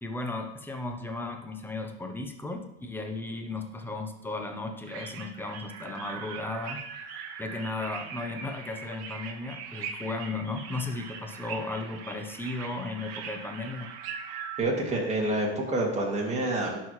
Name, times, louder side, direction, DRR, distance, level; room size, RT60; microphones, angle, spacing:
voice 1, 0.0-7.1 7.4-13.9, left 2 dB, 5° left, 4 dB, 0.8 m, -35 dB
sound 1, 4.8-14.6, right 7 dB, 50° right, 1.1 m, -41 dB
voice 2, 14.6-16.8, right 1 dB, 20° right, -2 dB, 2.2 m, -27 dB
11.5 x 4.7 x 3.1 m, 0.89 s
supercardioid pair, 120°, 33 cm